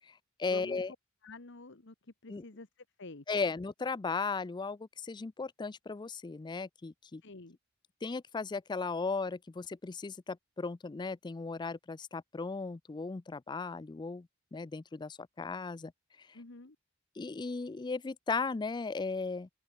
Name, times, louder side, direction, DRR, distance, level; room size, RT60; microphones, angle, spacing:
voice 1, 0.4-0.9 2.3-2.4 3.3-7.2 8.0-15.9 17.2-19.5, left 4 dB, 20° left, 0.4 m, -36 dB
voice 2, 1.2-1.9 2.2-2.7 3.0-3.2 7.2-7.6 16.3-16.8, left 2 dB, 65° left, 1.5 m, -48 dB
open air
head